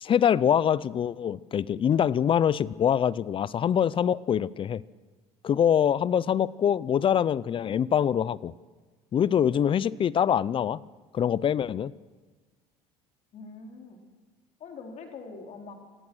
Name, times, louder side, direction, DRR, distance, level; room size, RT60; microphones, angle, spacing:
voice 1, 0.0-4.8 5.4-8.5 9.1-10.8 11.1-11.9, left 9 dB, 40° left, 21 dB, 0.6 m, -24 dB
voice 2, 13.3-14.0 14.6-15.7, left 4 dB, 55° left, 2 dB, 4.1 m, -43 dB
24.5 x 17.5 x 6.3 m, 1.3 s
supercardioid pair, 90°, 14 cm